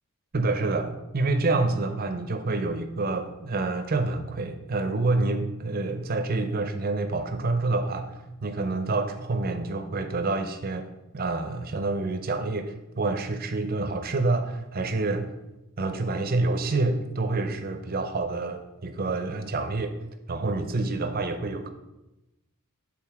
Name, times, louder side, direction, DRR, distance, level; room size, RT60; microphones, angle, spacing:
voice 1, 0.3-10.9 11.1-15.3 15.8-20.0 20.3-21.7, right 3 dB, 40° right, 8 dB, 0.6 m, -27 dB
7.7 x 3.7 x 4.7 m, 0.96 s
head